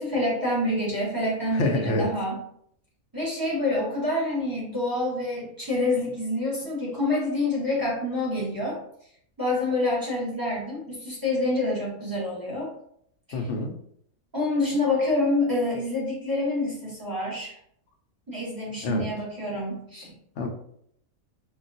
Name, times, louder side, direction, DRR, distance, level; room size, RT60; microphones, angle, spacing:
voice 1, 0.0-2.4 3.1-8.8 9.4-12.7 13.3-13.5 14.3-17.5 18.3-20.1, left 2 dB, 20° right, -6 dB, 0.8 m, -27 dB
voice 2, 1.5-2.1 13.3-13.8 18.8-19.1 20.4-20.5, left 2 dB, 65° left, 3 dB, 0.8 m, -26 dB
3.8 x 2.2 x 2.5 m, 0.68 s
omnidirectional pair, 1.5 m